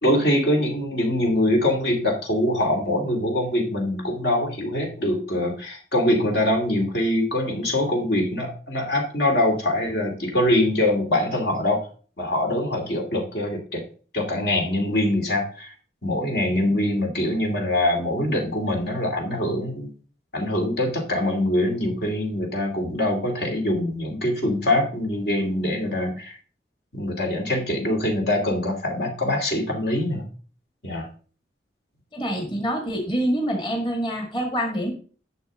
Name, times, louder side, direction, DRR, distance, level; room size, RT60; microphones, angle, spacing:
voice 1, 0.0-11.8 12.2-13.8 14.1-15.7 16.0-19.9 20.3-26.4 26.9-30.3 30.8-31.1 32.3-32.5, left 1 dB, 60° left, 2 dB, 2.6 m, -23 dB
voice 2, 32.1-34.9, equal, 25° left, 1 dB, 1.9 m, -26 dB
11.0 x 6.8 x 3.7 m, 0.39 s
head